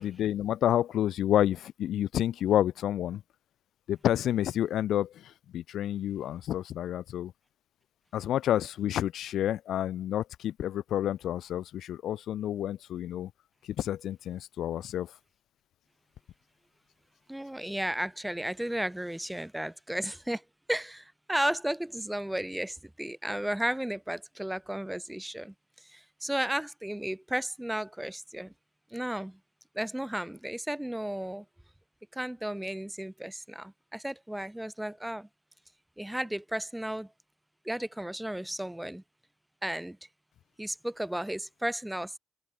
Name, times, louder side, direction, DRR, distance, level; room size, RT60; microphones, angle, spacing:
voice 1, 0.0-3.2 3.9-7.3 8.1-13.3 13.8-15.1, left 11 dB, 75° left, 0.7 m, -29 dB
voice 2, 17.3-20.4 20.7-25.5 25.8-28.5 28.9-29.4 29.7-31.4 32.1-35.3 36.0-37.1 37.6-39.0 39.6-40.0 40.6-42.2, right 1 dB, 5° right, 4.4 m, -34 dB
open air
cardioid pair, 90°, 0 cm